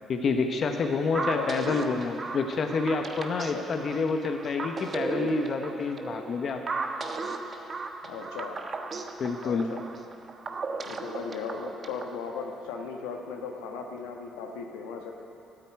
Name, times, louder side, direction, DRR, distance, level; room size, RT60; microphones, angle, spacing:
voice 1, 0.1-6.6 9.2-9.7, left 4 dB, 55° left, 5 dB, 1.0 m, -28 dB
voice 2, 1.1-1.5 3.5-3.7 8.0-8.6 9.4-9.8 10.8-15.1, left 5 dB, 90° left, 2 dB, 1.2 m, -37 dB
sound 1, 1.1-12.2, right 3 dB, 45° right, 1.2 m, -35 dB
13.0 x 9.1 x 9.0 m, 2.9 s
supercardioid pair, 60°, 0 cm